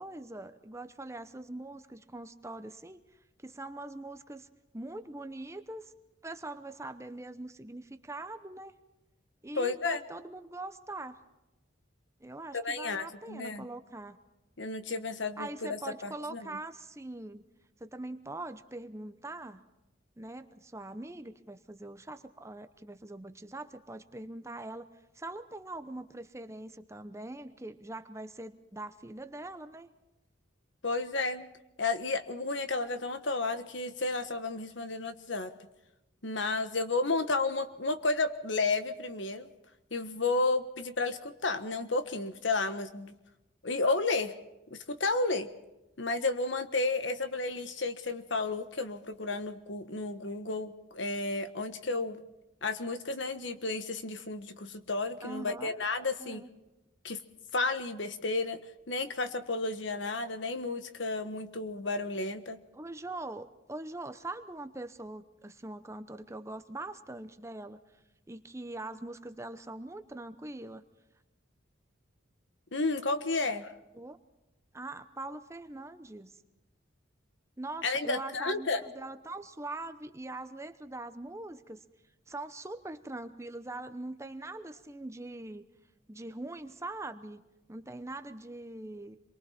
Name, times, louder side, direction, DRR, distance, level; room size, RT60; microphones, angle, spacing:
voice 1, 0.0-3.0 3.4-4.5 4.7-5.9 6.2-8.7 9.4-11.2 12.2-14.2 15.4-17.4 17.8-19.7 20.2-24.9 25.1-29.9 55.2-55.8 56.2-56.5 62.7-67.8 68.3-70.8 73.9-74.2 74.7-76.4 77.6-81.8 82.3-85.6 86.1-87.4 87.7-89.2, right 2 dB, 15° right, 10 dB, 0.8 m, -42 dB
voice 2, 9.6-10.0 12.6-13.6 14.6-16.5 30.8-31.5 31.8-35.5 36.2-39.5 39.9-43.1 43.6-44.3 44.7-45.5 46.0-52.2 52.6-56.4 57.0-57.2 57.5-58.6 58.9-62.6 72.7-73.8 77.8-78.8, left 3 dB, 70° left, 10 dB, 1.4 m, -32 dB
28.0 x 23.0 x 4.4 m, 1.0 s
head